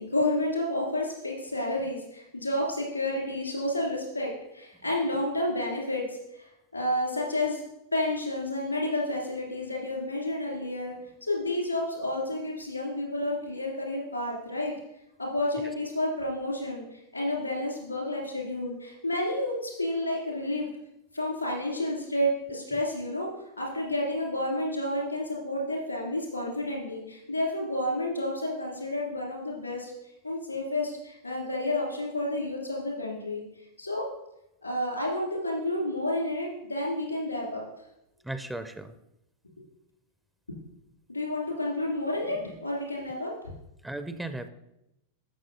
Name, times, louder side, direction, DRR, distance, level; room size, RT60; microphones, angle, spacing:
voice 1, 0.0-7.6 7.9-10.9 11.2-14.7 15.2-20.7 21.1-23.3 23.6-29.9 30.2-33.4 33.8-34.0 34.6-37.6 41.1-43.3, left 1 dB, 85° left, -2 dB, 3.0 m, -30 dB
voice 2, 38.2-38.9 43.8-44.5, right 2 dB, 5° right, 10 dB, 0.5 m, -36 dB
13.5 x 6.1 x 2.8 m, 0.87 s
figure-of-eight pair, 90°, 0 cm